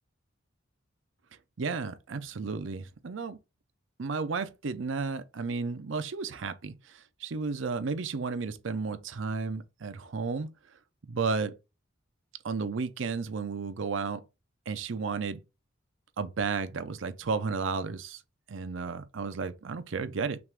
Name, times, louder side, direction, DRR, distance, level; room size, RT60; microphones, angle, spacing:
voice 1, 1.6-3.4 4.0-10.5 11.1-11.6 12.4-14.2 14.7-15.4 16.2-18.2 18.5-20.4, right 4 dB, 70° right, 0.6 m, -33 dB
5.9 x 2.5 x 3.5 m
head